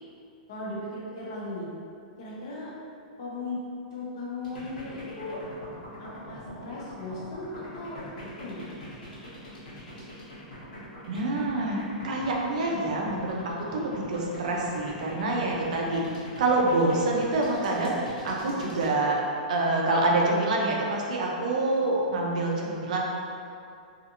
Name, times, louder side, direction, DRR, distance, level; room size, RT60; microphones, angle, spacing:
voice 1, 0.5-1.7 2.2-2.7 3.2-3.6 3.9-5.4 6.0-8.6, left 2 dB, 40° left, -5 dB, 0.6 m, -37 dB
sound 1, 4.4-18.9, left 1 dB, 80° left, 1.0 m, -43 dB
voice 2, 11.1-16.0 16.4-18.0 18.2-19.2 19.5-23.0, right 2 dB, 60° right, -2 dB, 0.4 m, -26 dB
2.6 x 2.4 x 2.7 m, 2.5 s
supercardioid pair, 175°, 4 cm